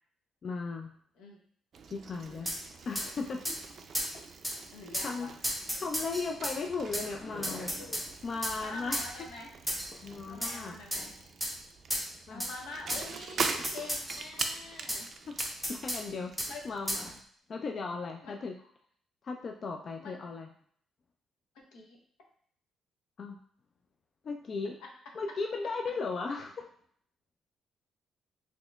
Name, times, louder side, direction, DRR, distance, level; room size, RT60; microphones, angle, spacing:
voice 1, 0.4-0.9 1.9-2.5 2.9-3.4 5.0-5.3 5.8-7.7 8.2-9.1 10.0-10.8 12.3-12.4 13.6-13.7 15.3-15.4 15.7-16.3 16.6-17.2 17.5-18.5 19.2-20.5 23.2-23.4 24.2-24.8 25.1-26.7, left 4 dB, 50° left, 3 dB, 0.3 m, -36 dB
Bicycle, 1.7-17.2, right 5 dB, 55° right, 0.3 m, -43 dB
voice 2, 2.3-2.6 3.4-3.6 4.7-5.3 7.8-8.0 8.6-9.5 10.3-11.1 12.3-15.1 16.4-16.6 18.2-18.3 20.0-20.1 21.5-22.0, left 3 dB, 90° left, 0 dB, 0.7 m, -45 dB
sound 1, 2.4-2.6 2.9-3.1 3.4-3.6 3.9-4.1 4.4-4.6 4.9-5.1 5.4-6.6 6.9-7.1 7.4-8.1 8.4-8.6 8.9-9.1 9.7-9.9 10.4-10.6 10.9-11.0 11.4-11.5 11.9-12.1 12.4-12.5 12.9-13.0 13.4-14.5 14.9-15.0 15.4-16.0 16.4-16.5 16.9-17.0, equal, 5° left, 0.8 m, -33 dB
sound 2, 6.5-8.6 9.6-10.5 10.9-11.4 11.6-11.7 12.1-12.2, left 2 dB, 30° left, 0.8 m, -49 dB
4.1 x 2.9 x 2.2 m, 0.62 s
cardioid pair, 90°, 0 cm